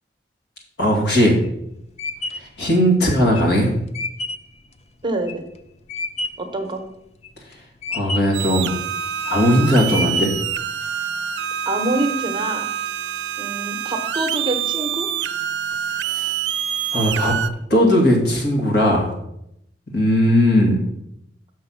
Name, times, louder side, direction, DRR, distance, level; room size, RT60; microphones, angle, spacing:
voice 1, 0.8-1.4 2.4-3.7 7.9-8.8 9.2-10.3 16.1-16.3 16.9-17.3 17.7-19.1 19.9-20.8, equal, 65° left, 0 dB, 2.4 m, -18 dB
sound 1, 1.4-6.5 7.0-7.5 7.8-8.5 9.0-9.5 9.9-10.6, left 2 dB, 35° left, 0.5 m, -30 dB
voice 2, 5.0-5.4 6.4-6.8 11.7-12.6 13.4-15.1, right 2 dB, 30° right, 5 dB, 1.0 m, -25 dB
sound 2, 8.3-17.5, right 9 dB, 80° right, 0.5 m, -26 dB
6.4 x 6.1 x 5.7 m, 0.79 s
head